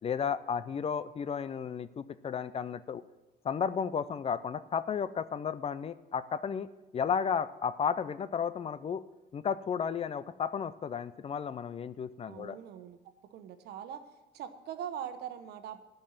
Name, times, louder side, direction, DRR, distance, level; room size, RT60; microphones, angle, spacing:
voice 1, 0.0-3.0 3.4-6.7 6.9-9.0 9.3-12.6, left 7 dB, 35° left, 15 dB, 0.5 m, -33 dB
voice 2, 12.3-13.0 13.3-14.0 14.3-15.8, right 9 dB, 75° right, 9 dB, 1.1 m, -41 dB
12.0 x 5.5 x 8.9 m, 1.1 s
cardioid pair, 110°, 17 cm